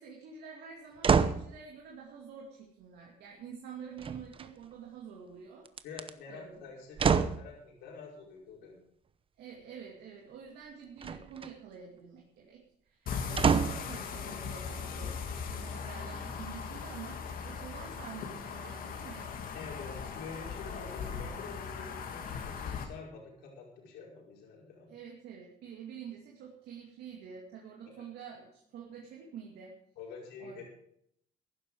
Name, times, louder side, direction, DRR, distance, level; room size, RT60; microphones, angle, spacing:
voice 1, 0.0-5.7 6.3-6.7 9.4-19.3 24.9-29.8 30.4-30.6, right 7 dB, 75° right, -1 dB, 2.5 m, -48 dB
sound 1, 1.0-1.5 4.0-4.7 5.6-6.1 7.0-7.5 11.0-11.5 13.4-13.9 14.6-14.7, right 6 dB, 30° right, 0.8 m, -27 dB
voice 2, 5.8-8.8 19.5-24.9 27.8-28.1 30.0-30.6, left 5 dB, 85° left, -2 dB, 5.2 m, -47 dB
sound 2, 13.1-22.8, left 6 dB, 60° left, 2.2 m, -39 dB
15.0 x 11.5 x 4.9 m, 0.71 s
cardioid pair, 110°, 17 cm